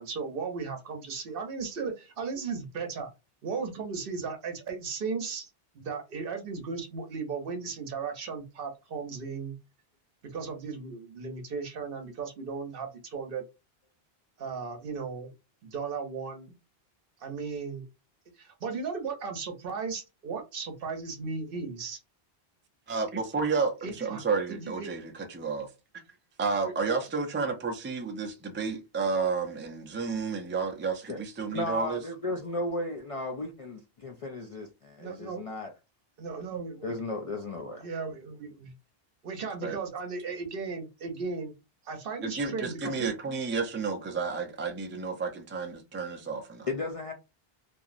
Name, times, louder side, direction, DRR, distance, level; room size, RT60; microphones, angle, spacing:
voice 1, 0.0-3.1 3.4-5.5 5.7-9.6 10.2-13.4 14.4-15.3 15.6-16.5 17.2-17.8 18.4-22.0 24.1-24.2 24.5-24.9 35.0-35.4 36.2-36.9 37.8-38.7 39.2-41.5 41.9-43.1, right 5 dB, 65° right, 0.9 m, -36 dB
voice 2, 22.9-25.7 26.4-32.0 39.6-39.8 42.2-46.7, right 4 dB, 20° right, 0.3 m, -31 dB
voice 3, 31.5-35.7 36.8-37.9 46.7-47.1, left 2 dB, 55° left, 0.4 m, -35 dB
2.9 x 2.5 x 2.5 m
omnidirectional pair, 1.0 m